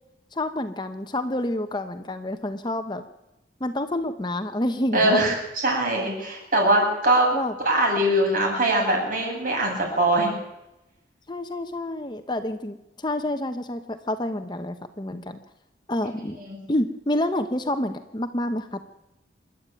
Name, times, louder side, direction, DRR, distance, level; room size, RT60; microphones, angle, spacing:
voice 1, 0.3-3.0 3.6-5.2 7.3-7.5 11.3-15.4 15.9-16.4 16.7-18.8, left 1 dB, 25° left, 8 dB, 1.0 m, -28 dB
voice 2, 4.9-5.3 5.6-7.3 7.6-10.3 16.5-16.6, right 1 dB, 50° right, 0 dB, 7.9 m, -21 dB
26.5 x 11.0 x 9.1 m, 0.93 s
head